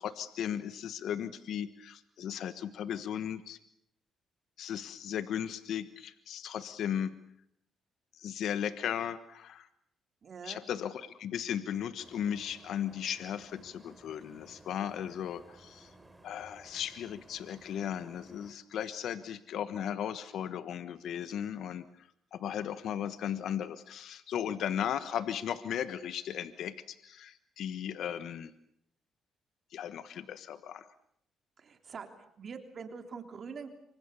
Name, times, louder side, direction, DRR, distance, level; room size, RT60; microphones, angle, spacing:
voice 1, 0.0-3.6 4.6-7.1 8.1-9.7 10.4-15.9 16.2-28.5 29.7-30.8, left 9 dB, 75° left, 12 dB, 1.3 m, -36 dB
voice 2, 10.2-10.6 31.6-32.1 32.4-33.8, right 5 dB, 50° right, 6 dB, 3.5 m, -44 dB
sound 1, 12.0-18.5, right 2 dB, 10° right, 3.6 m, -58 dB
27.5 x 25.0 x 7.0 m, 0.72 s
cardioid pair, 90°, 0 cm